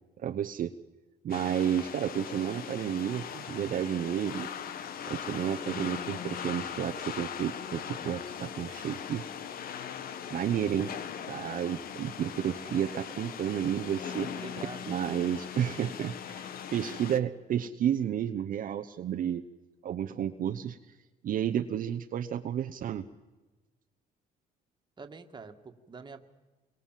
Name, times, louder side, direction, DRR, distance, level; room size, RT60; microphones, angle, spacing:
voice 1, 0.2-0.7 1.2-4.5 5.1-9.2 10.3-10.9 11.3-14.3 14.9-19.5 19.8-20.8 21.2-23.0, right 9 dB, 55° right, 5 dB, 1.0 m, -31 dB
sound 1, 1.3-17.2, left 8 dB, 60° left, 1.3 m, -40 dB
voice 2, 14.2-14.9 25.0-26.2, right 4 dB, 25° right, 6 dB, 1.9 m, -45 dB
28.0 x 23.5 x 7.6 m, 1.2 s
cardioid pair, 110°, 17 cm